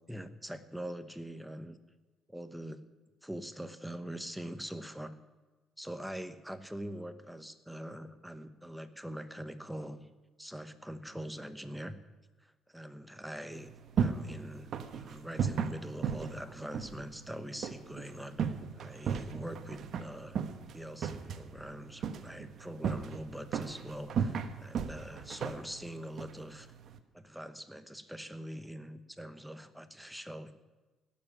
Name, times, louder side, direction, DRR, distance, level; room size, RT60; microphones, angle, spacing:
voice 1, 0.1-1.8 2.3-2.8 3.2-5.2 5.8-10.1 10.4-12.0 12.4-14.7 15.0-20.4 20.7-26.7 27.1-30.5, equal, 5° right, 10 dB, 1.0 m, -43 dB
sound 1, 13.5-27.0, right 6 dB, 55° right, 1.1 m, -37 dB
17.0 x 7.5 x 10.0 m, 1.2 s
cardioid pair, 100°, 0 cm